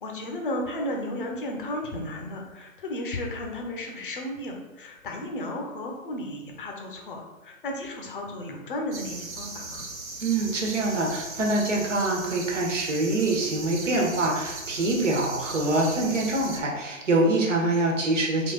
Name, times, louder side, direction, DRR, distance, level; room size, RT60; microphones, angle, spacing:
voice 1, 0.0-9.9, left 1 dB, 40° left, 1 dB, 0.7 m, -34 dB
sound 1, 8.9-16.6, right 3 dB, 80° right, 0.9 m, -38 dB
voice 2, 10.2-18.5, right 2 dB, 60° right, -1 dB, 1.3 m, -25 dB
3.7 x 2.6 x 3.9 m, 1.1 s
figure-of-eight pair, 145°, 41 cm